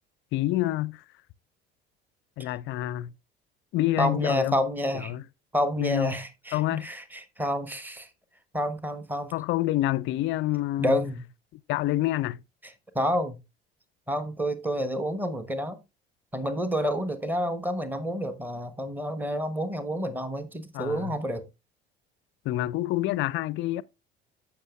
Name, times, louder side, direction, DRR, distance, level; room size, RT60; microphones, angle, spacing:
voice 1, 0.3-1.0 2.4-3.1 3.7-4.6 5.0-5.2 5.8-6.2 6.5-6.9 9.3-11.0 11.7-12.4 20.7-21.2 22.4-23.8, left 15 dB, 40° left, 0.5 m, -27 dB
voice 2, 4.0-5.1 5.5-8.1 8.5-9.3 10.8-11.2 12.6-13.4 14.1-15.8 16.3-21.4, equal, 5° right, 1.1 m, -29 dB
14.5 x 5.9 x 2.4 m
figure-of-eight pair, 60°, 30 cm